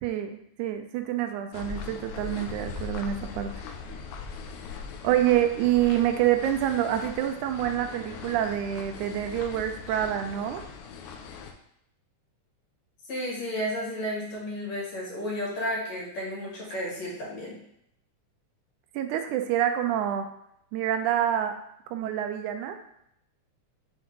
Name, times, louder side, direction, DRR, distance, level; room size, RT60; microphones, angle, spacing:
voice 1, 0.0-0.3 0.6-3.5 5.0-10.6 18.9-20.3 20.7-21.6 21.9-22.8, right 11 dB, 80° right, 7 dB, 2.0 m, -27 dB
sound 1, 1.5-11.5, left 6 dB, 80° left, 1.9 m, -40 dB
voice 2, 13.1-17.6, equal, 65° left, -5 dB, 3.2 m, -32 dB
7.8 x 3.8 x 3.7 m, 0.76 s
omnidirectional pair, 3.5 m